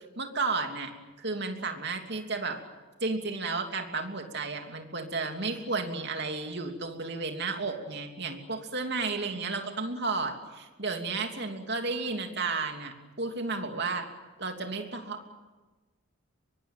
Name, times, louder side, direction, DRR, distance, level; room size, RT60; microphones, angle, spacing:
voice 1, 0.2-0.9 1.2-2.6 3.0-14.1 14.4-15.3, right 3 dB, 50° right, 4 dB, 3.0 m, -33 dB
24.5 x 23.0 x 9.2 m, 1.2 s
head